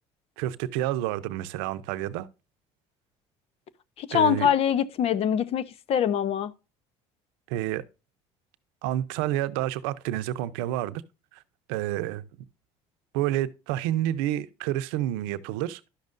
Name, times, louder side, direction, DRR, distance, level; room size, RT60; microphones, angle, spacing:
voice 1, 0.4-2.3 4.1-4.5 7.5-7.8 8.8-11.0 11.3-11.4 11.7-12.2 13.1-15.9, right 13 dB, 85° right, 0.6 m, -29 dB
voice 2, 4.0-6.5, left 8 dB, 55° left, 0.8 m, -24 dB
11.5 x 6.4 x 2.5 m
supercardioid pair, 85°, 12 cm